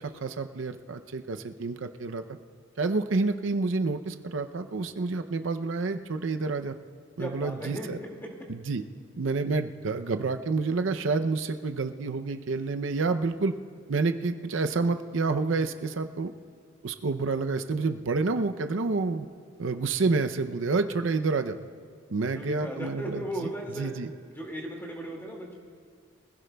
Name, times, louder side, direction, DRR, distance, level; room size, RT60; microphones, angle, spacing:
voice 1, 0.0-2.2 2.8-6.7 7.2-8.0 8.5-8.8 9.2-13.5 13.9-16.3 16.8-19.3 19.6-21.6 22.1-23.5 23.8-24.1, right 3 dB, 70° right, 8 dB, 0.6 m, -29 dB
voice 2, 7.2-8.3 22.3-23.9 24.3-25.5, right 1 dB, 10° left, -1 dB, 2.1 m, -36 dB
24.5 x 16.0 x 2.3 m, 2.2 s
head